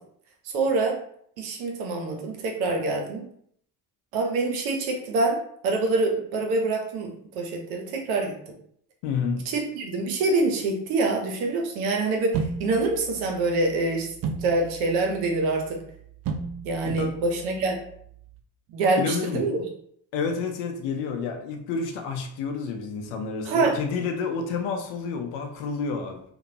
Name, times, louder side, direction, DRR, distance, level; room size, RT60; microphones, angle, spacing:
voice 1, 0.4-1.0 1.4-3.2 4.1-5.4 5.6-8.3 9.5-14.1 14.4-15.8 16.6-17.8 18.7-19.6 23.4-23.7, right 3 dB, 90° right, 2 dB, 0.7 m, -25 dB
voice 2, 9.0-9.5 17.0-17.2 19.0-19.5 20.1-26.2, left 5 dB, 75° left, 5 dB, 0.6 m, -29 dB
sound 1, 12.3-18.4, right 6 dB, 50° right, 0.4 m, -36 dB
3.0 x 2.1 x 2.7 m, 0.66 s
hypercardioid pair, 55°, 43 cm